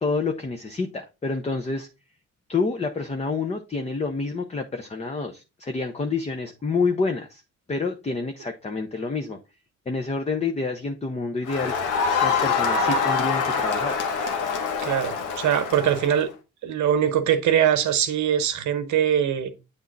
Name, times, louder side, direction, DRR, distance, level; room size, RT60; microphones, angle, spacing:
voice 1, 0.0-1.9 2.5-7.4 7.7-9.4 9.9-11.7 12.2-14.0, left 4 dB, 20° left, 0.7 m, -28 dB
Crowd, 11.5-16.3, left 5 dB, 85° left, 1.3 m, -25 dB
voice 2, 14.8-16.3 16.6-19.5, right 9 dB, 70° right, 1.0 m, -22 dB
8.3 x 3.6 x 3.8 m
cardioid pair, 90°, 30 cm